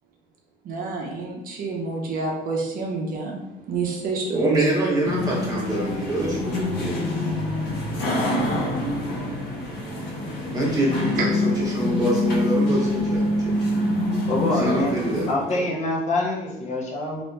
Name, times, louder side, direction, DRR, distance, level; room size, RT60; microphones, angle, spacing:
voice 1, 0.6-4.7 8.7-9.2 10.3-10.5 11.2-11.3, right 3 dB, 55° right, 0 dB, 0.6 m, -29 dB
voice 2, 4.3-7.0 10.5-13.5 14.6-15.3 15.6-15.7, right 1 dB, 20° right, -4 dB, 1.0 m, -25 dB
sound 1, 5.0-15.3, left 2 dB, 75° left, 0.9 m, -25 dB
voice 3, 14.3-15.0 15.3-17.2, left 2 dB, 45° left, -2 dB, 0.6 m, -25 dB
2.8 x 2.5 x 2.2 m, 0.98 s
cardioid pair, 110°, 17 cm